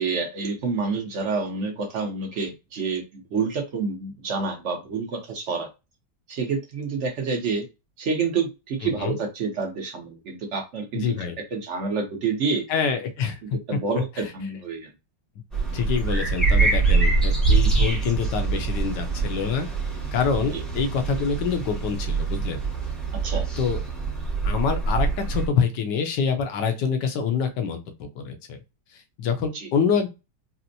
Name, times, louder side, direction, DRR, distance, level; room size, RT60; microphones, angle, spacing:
voice 1, 0.0-5.7 6.3-7.6 8.0-11.1 11.5-12.6 13.7-14.9 20.5-20.6 23.1-23.5 29.5-29.7, right 4 dB, 55° right, 3 dB, 0.9 m, -28 dB
voice 2, 8.8-9.2 10.9-11.4 12.7-13.8 14.2-14.3 15.7-19.7 20.1-22.6 23.6-23.8 24.4-28.6 29.2-30.1, left 6 dB, 75° left, 6 dB, 1.4 m, -26 dB
sound 1, 15.5-25.5, right 4 dB, ahead, 0.7 m, -24 dB
4.2 x 2.1 x 2.6 m, 0.26 s
omnidirectional pair, 1.9 m